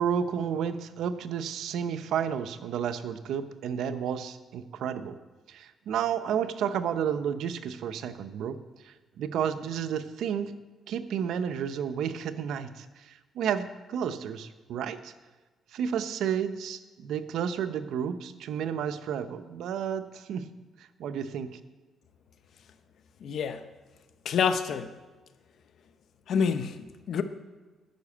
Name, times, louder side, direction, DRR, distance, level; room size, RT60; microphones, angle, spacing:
voice 1, 0.0-5.2 5.5-8.6 8.8-10.5 10.9-15.1 15.7-20.5 20.8-21.6, right 8 dB, 80° right, 11 dB, 0.7 m, -31 dB
voice 2, 23.2-23.6 24.2-24.9 26.3-27.2, left 6 dB, 65° left, 10 dB, 0.8 m, -27 dB
11.5 x 5.8 x 8.4 m, 1.3 s
cardioid pair, 90°, 0 cm